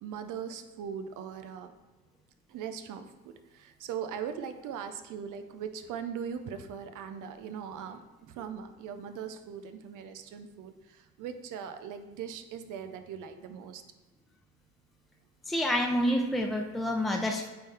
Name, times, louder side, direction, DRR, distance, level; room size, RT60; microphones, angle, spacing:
voice 1, 0.0-1.7 2.5-13.8, right 7 dB, 85° right, 8 dB, 0.6 m, -40 dB
voice 2, 15.5-17.5, equal, ahead, 0 dB, 0.6 m, -28 dB
8.6 x 3.8 x 3.3 m, 1.2 s
cardioid pair, 90°, 30 cm